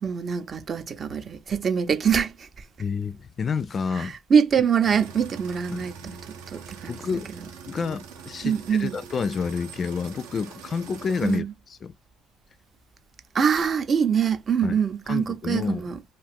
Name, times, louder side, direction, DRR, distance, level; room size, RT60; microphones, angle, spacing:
voice 1, 0.0-2.5 3.9-6.2 6.5-7.0 7.8-8.0 8.4-9.0 11.2-11.5 13.3-16.0, right 7 dB, 40° right, 0.6 m, -24 dB
voice 2, 2.8-4.1 5.7-5.9 6.9-7.3 7.7-11.9 14.6-14.8 15.1-15.9, left 5 dB, 40° left, 0.3 m, -29 dB
sound 1, 4.8-11.4, right 6 dB, 80° right, 0.7 m, -43 dB
2.4 x 2.4 x 3.4 m
hypercardioid pair, 70°, 0 cm